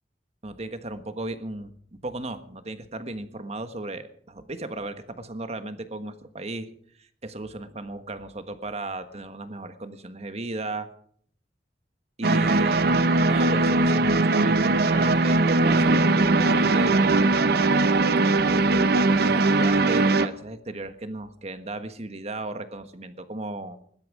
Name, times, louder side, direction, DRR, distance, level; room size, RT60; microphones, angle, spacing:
voice 1, 0.4-1.7 2.0-6.7 7.2-10.9 12.2-12.9 13.2-17.6 19.1-23.8, right 2 dB, 35° right, 9 dB, 1.4 m, -35 dB
sound 1, 12.2-20.3, right 2 dB, 60° right, 0.8 m, -20 dB
21.0 x 12.0 x 4.9 m, 0.62 s
head